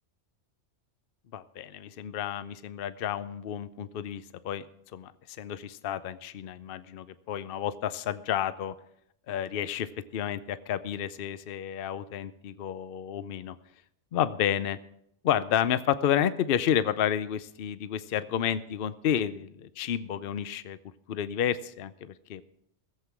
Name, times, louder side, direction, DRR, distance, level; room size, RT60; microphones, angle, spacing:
voice 1, 1.3-4.7 4.9-5.1 5.4-8.7 9.3-13.6 14.1-14.8 15.2-20.8 21.1-22.4, left 9 dB, 60° left, 14 dB, 0.8 m, -30 dB
17.5 x 7.9 x 5.9 m, 0.76 s
omnidirectional pair, 1.2 m